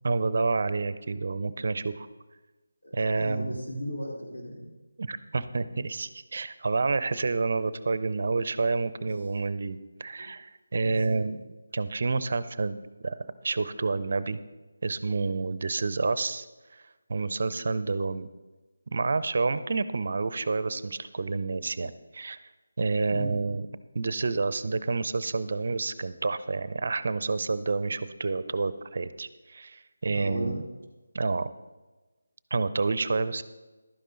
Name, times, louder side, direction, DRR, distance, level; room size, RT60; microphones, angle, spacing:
voice 1, 0.0-2.1 2.9-3.6 5.0-11.4 11.7-14.4 14.8-16.4 17.1-18.3 18.9-22.4 22.8-23.6 23.9-30.6 31.1-31.5 32.5-33.4, right 3 dB, 50° right, 15 dB, 0.6 m, -29 dB
voice 2, 2.8-4.7 9.0-9.1 10.2-10.3 10.8-11.3 23.1-23.4 30.1-30.6, equal, 80° left, -1 dB, 4.2 m, -36 dB
12.0 x 10.0 x 3.9 m, 1.2 s
figure-of-eight pair, 160°, 0 cm